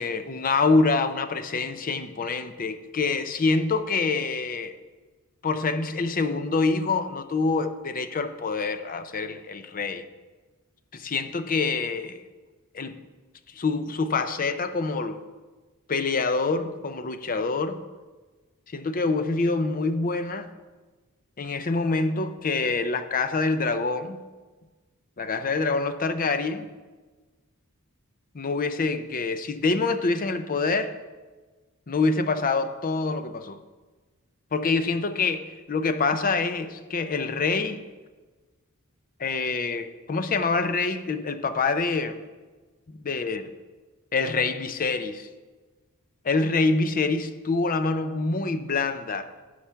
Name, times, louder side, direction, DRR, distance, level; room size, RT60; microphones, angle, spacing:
voice 1, 0.0-4.7 5.4-10.0 10.9-12.2 12.7-13.0 13.5-15.2 15.9-17.8 18.7-20.5 21.4-24.2 25.2-26.7 28.3-31.0 31.9-33.6 34.5-37.8 39.2-42.2 42.9-43.4 44.1-45.3 46.2-49.3, left 3 dB, 40° left, 0.6 m, -26 dB
14.5 x 4.9 x 5.7 m
head